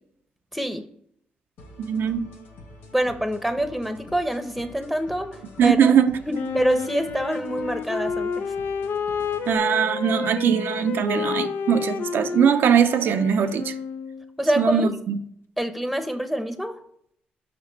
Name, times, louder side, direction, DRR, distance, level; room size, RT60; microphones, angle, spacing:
voice 1, 0.5-0.9 2.9-5.9 6.2-8.4 14.4-14.9 15.6-16.8, right 1 dB, ahead, 0.9 m, -26 dB
sound 1, 1.6-9.6, left 1 dB, 85° left, 1.1 m, -46 dB
voice 2, 1.8-2.3 5.6-6.2 9.5-13.7 14.6-15.2, right 8 dB, 70° right, 0.5 m, -21 dB
Wind instrument woodwind instrument, 6.3-14.3, left 6 dB, 70° left, 0.5 m, -30 dB
5.1 x 5.1 x 4.1 m
cardioid pair, 65°, 4 cm